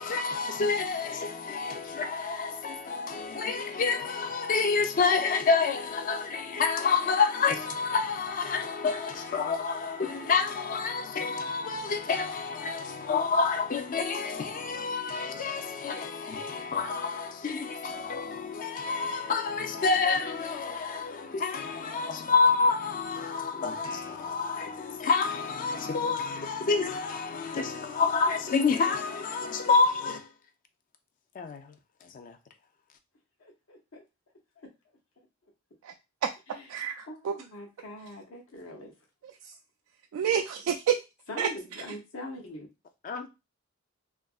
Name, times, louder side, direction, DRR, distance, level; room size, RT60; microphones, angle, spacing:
voice 1, 0.0-30.3 31.4-31.7 32.1-32.4 43.0-43.3, left 4 dB, 40° left, 0.3 m, -28 dB
voice 2, 33.4-34.0 34.6-34.7 36.5-36.7 37.0-38.9 40.2-40.3 41.3-42.7, left 1 dB, 70° left, 0.7 m, -43 dB
voice 3, 36.7-37.3 40.1-41.0 41.4-41.5, right 8 dB, 90° right, 0.3 m, -28 dB
2.6 x 2.4 x 2.3 m
head